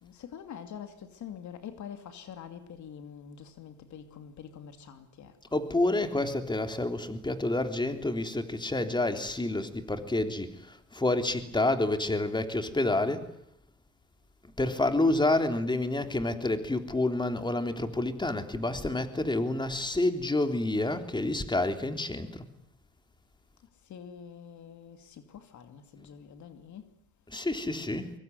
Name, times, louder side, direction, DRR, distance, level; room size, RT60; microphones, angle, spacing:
voice 1, 0.0-5.4 23.9-26.9, left 8 dB, 70° left, 2.7 m, -45 dB
voice 2, 5.5-13.2 14.6-22.4 26.0-26.1 27.3-28.1, left 2 dB, 15° left, 3.5 m, -29 dB
24.0 x 23.0 x 9.6 m
cardioid pair, 90°, 30 cm